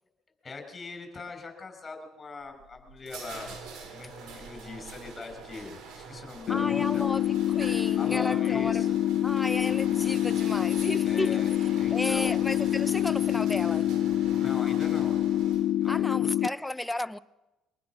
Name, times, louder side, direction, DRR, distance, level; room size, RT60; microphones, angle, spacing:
voice 1, 0.4-3.6 3.8-7.0 7.9-8.9 11.0-11.5 11.8-12.3 14.3-15.2 15.8-16.3, left 4 dB, 30° left, 6.4 m, -41 dB
sound 1, 2.4-16.0, right 5 dB, 70° right, 4.3 m, -45 dB
sound 2, 6.5-16.5, left 12 dB, 70° left, 0.6 m, -26 dB
voice 2, 6.5-8.9 9.2-11.4 11.9-13.9 15.9-17.2, left 1 dB, 10° left, 0.9 m, -33 dB
24.5 x 19.0 x 6.2 m
supercardioid pair, 80°, 0 cm